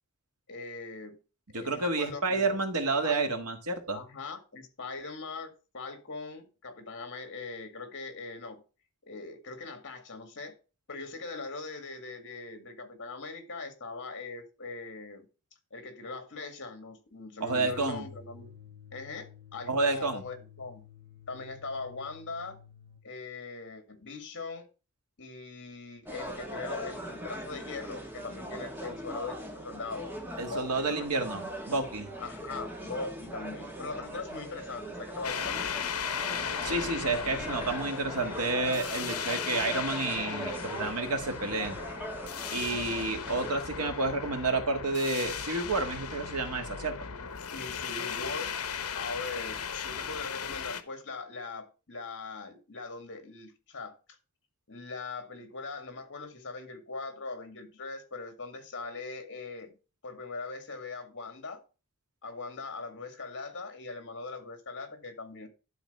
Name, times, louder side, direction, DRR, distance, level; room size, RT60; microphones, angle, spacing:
voice 1, 0.5-1.2 1.5-2.6 3.0-3.2 3.9-8.6 9.0-10.6 10.9-15.3 15.7-18.5 18.9-20.9 21.3-22.6 23.0-24.7 25.2-30.2 30.4-31.3 32.2-36.0 47.5-48.5 49.0-54.0 54.7-59.7 60.0-61.6 62.2-65.5, left 3 dB, 55° left, 2.0 m, -41 dB
voice 2, 1.5-4.0 17.4-18.1 19.7-20.2 30.4-32.1 36.6-41.8 42.5-47.0, right 3 dB, 90° right, 1.7 m, -30 dB
sound 1, 17.5-23.1, left 6 dB, 55° right, 1.2 m, -52 dB
sound 2, 26.1-43.5, right 1 dB, 10° right, 1.5 m, -40 dB
sound 3, 35.2-50.8, left 7 dB, 75° left, 1.0 m, -37 dB
11.5 x 4.0 x 5.4 m
head